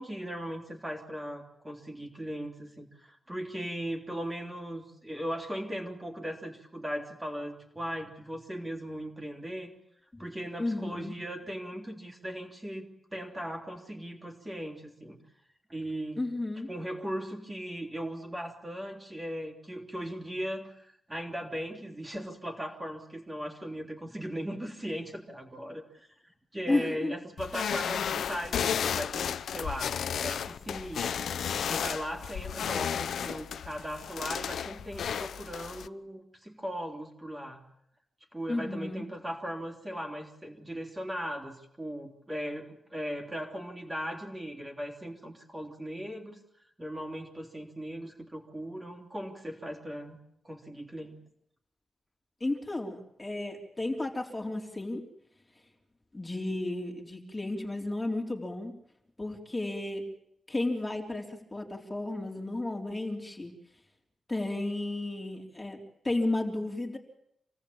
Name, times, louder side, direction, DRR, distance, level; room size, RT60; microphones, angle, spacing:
voice 1, 0.0-9.7 10.2-15.2 15.7-16.2 16.7-31.3 31.7-37.6 38.3-46.4 46.8-50.2 50.4-51.2, equal, 10° right, 1 dB, 3.4 m, -38 dB
voice 2, 10.6-11.1 16.2-16.7 26.7-27.1 38.5-39.0 52.4-55.0 56.1-58.7 59.2-60.0 60.5-63.5 64.3-65.8 66.0-67.0, left 2 dB, 15° left, 2 dB, 3.5 m, -33 dB
sound 1, 27.4-35.9, left 8 dB, 80° left, 0.9 m, -33 dB
27.5 x 18.5 x 8.7 m, 0.74 s
wide cardioid pair, 175°, 0 cm